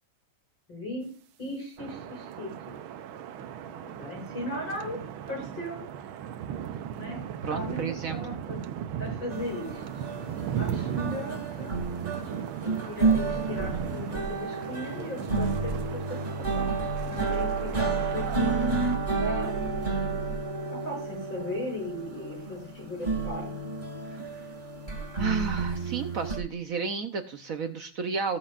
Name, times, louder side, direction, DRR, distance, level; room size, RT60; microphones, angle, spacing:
voice 1, 0.7-1.1 1.4-2.8 3.6-5.0 5.3-5.9 7.0-8.6 9.0-9.8 10.6-11.8 12.6-16.2 16.5-23.7, left 1 dB, 70° left, -1 dB, 7.2 m, -37 dB
sound 1, 1.8-19.0, right 9 dB, 85° right, 1.6 m, -37 dB
voice 2, 7.4-8.2 24.1-24.4 25.2-28.4, right 5 dB, 55° right, 7 dB, 1.0 m, -32 dB
sound 2, 9.3-26.4, right 4 dB, 25° right, 2.3 m, -31 dB
18.5 x 7.6 x 2.5 m, 0.42 s
omnidirectional pair, 2.2 m